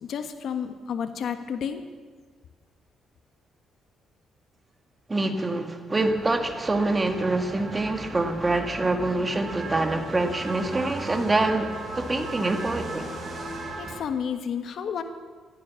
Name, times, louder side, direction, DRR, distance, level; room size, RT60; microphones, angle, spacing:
voice 1, 0.0-1.8 13.8-15.0, left 7 dB, 65° left, 8 dB, 1.3 m, -31 dB
voice 2, 5.1-13.1, right 2 dB, 25° right, 5 dB, 1.9 m, -25 dB
sound 1, 5.9-14.0, right 2 dB, 40° right, 6.8 m, -37 dB
15.0 x 13.5 x 7.0 m, 1.5 s
cardioid pair, 90°, 0 cm